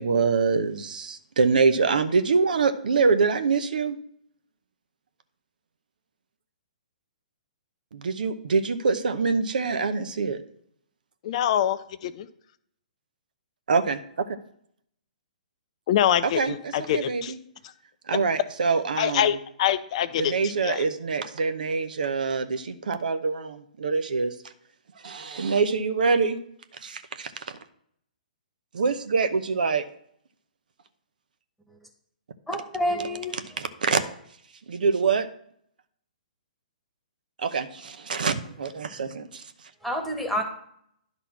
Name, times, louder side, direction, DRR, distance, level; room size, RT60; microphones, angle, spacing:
voice 1, 0.0-4.0 7.9-10.4 13.7-14.0 14.2-14.4 16.2-17.4 18.1-19.4 20.2-24.3 25.0-26.4 26.8-27.6 28.7-29.8 33.6-34.0 34.7-35.3 37.4-39.4, right 4 dB, 70° right, 10 dB, 0.8 m, -25 dB
voice 2, 11.2-12.3 15.9-17.3 19.0-20.3 20.6-20.8, left 10 dB, 45° left, 11 dB, 0.6 m, -25 dB
voice 3, 32.5-33.4 33.9-34.1 39.8-40.4, equal, ahead, 2 dB, 1.4 m, -28 dB
10.5 x 4.2 x 5.7 m, 0.69 s
hypercardioid pair, 135°, 5 cm